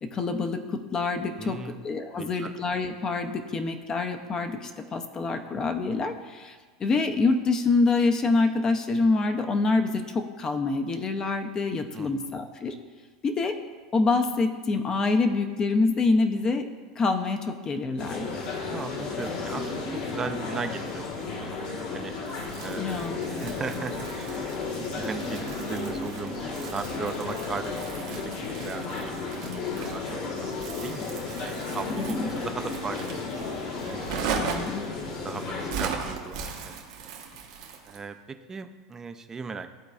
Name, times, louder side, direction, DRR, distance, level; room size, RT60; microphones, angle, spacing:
voice 1, 0.0-1.6 1.8-12.7 13.2-13.5 13.9-16.7 17.0-18.5 22.8-23.5 32.0-32.3 34.3-34.8, left 3 dB, 30° left, 6 dB, 0.5 m, -26 dB
voice 2, 1.4-1.8 2.1-2.5 11.9-12.1 18.7-22.1 22.6-28.3 28.6-34.2 35.2-36.9 37.8-39.8, right 5 dB, 20° right, 8 dB, 0.4 m, -38 dB
sound 1, 18.0-35.7, left 4 dB, 60° left, 1.3 m, -33 dB
Crumpling crinkling, 22.3-38.1, right 5 dB, 70° right, 1.0 m, -38 dB
11.5 x 4.0 x 2.4 m, 1.5 s
hypercardioid pair, 95°, 2 cm